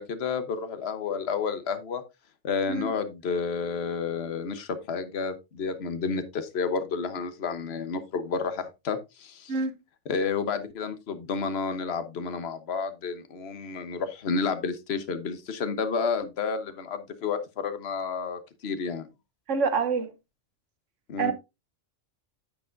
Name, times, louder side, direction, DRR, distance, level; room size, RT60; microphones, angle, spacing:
voice 1, 0.0-2.0 2.4-9.5 10.1-19.1 21.1-21.3, left 5 dB, 60° left, 1.2 m, -30 dB
voice 2, 19.5-20.1 21.2-21.3, right 5 dB, 90° right, 1.4 m, -26 dB
10.0 x 8.2 x 2.5 m
omnidirectional pair, 1.2 m